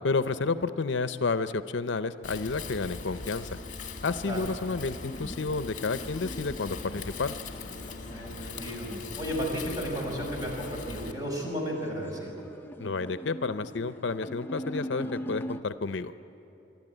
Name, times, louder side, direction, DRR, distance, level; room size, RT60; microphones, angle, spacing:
voice 1, 0.0-3.5 4.0-7.3 12.8-16.2, left 4 dB, 70° left, 12 dB, 0.6 m, -30 dB
Wind, 2.2-11.1, left 4 dB, 45° left, 1.7 m, -40 dB
sound 1, 4.8-15.6, equal, 10° left, 0.6 m, -42 dB
voice 2, 8.1-8.9 9.1-12.4, equal, 20° right, -1 dB, 5.1 m, -33 dB
26.0 x 12.5 x 9.0 m, 3.0 s
head